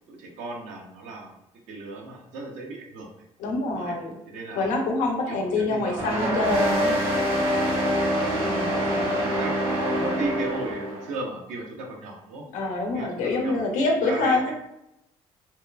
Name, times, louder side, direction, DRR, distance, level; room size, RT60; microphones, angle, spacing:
voice 1, 0.1-1.3 1.7-3.1 3.7-3.9 4.3-4.7 5.3-6.1 8.1-12.4 12.9-14.5, right 3 dB, 85° right, 0 dB, 0.7 m, -36 dB
voice 2, 3.4-4.1 4.6-7.0 8.5-9.3 12.5-14.5, left 2 dB, 85° left, 1 dB, 0.6 m, -26 dB
sound 1, 6.0-11.1, equal, 50° right, 1.0 m, -25 dB
2.8 x 2.2 x 2.2 m, 0.85 s
cardioid pair, 90°, 12 cm